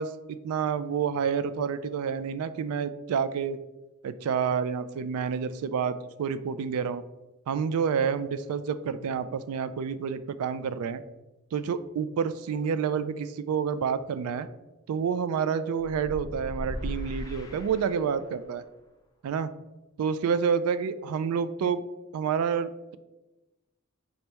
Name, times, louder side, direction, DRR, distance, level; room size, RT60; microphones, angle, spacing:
voice 1, 0.0-3.6 4.0-7.0 7.5-11.0 11.5-14.5 14.9-18.6 19.2-19.5 20.0-21.8 22.1-23.0, right 6 dB, 85° right, 14 dB, 0.3 m, -29 dB
sound 1, 15.9-18.4, left 1 dB, 15° left, 0.4 m, -38 dB
5.2 x 2.9 x 3.3 m, 1.0 s
head